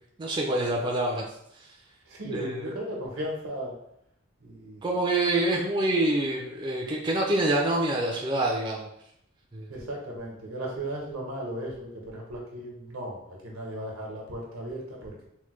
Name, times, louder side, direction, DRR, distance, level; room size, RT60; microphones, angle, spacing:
voice 1, 0.2-1.3 2.2-2.7 4.8-8.9 9.5-9.7, right 1 dB, 20° right, -1 dB, 0.3 m, -26 dB
voice 2, 2.1-3.7 4.4-4.8 9.7-15.3, right 1 dB, 85° right, -2 dB, 0.9 m, -36 dB
3.2 x 2.1 x 3.0 m, 0.75 s
head